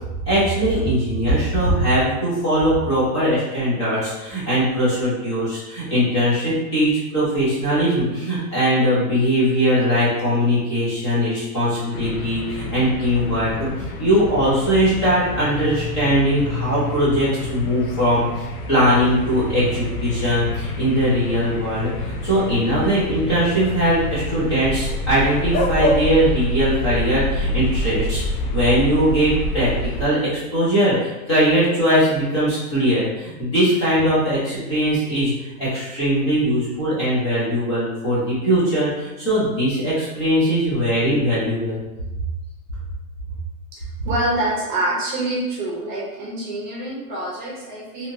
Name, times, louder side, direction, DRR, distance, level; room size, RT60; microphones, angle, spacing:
voice 1, 0.3-13.7 14.0-28.2 28.5-41.8, equal, 20° left, -10 dB, 0.5 m, -20 dB
sound 1, 11.9-30.0, left 1 dB, 70° left, 0.6 m, -27 dB
voice 2, 43.8-48.1, right 1 dB, 30° right, -4 dB, 0.7 m, -26 dB
2.8 x 2.7 x 2.6 m, 1.0 s
hypercardioid pair, 165°, 47 cm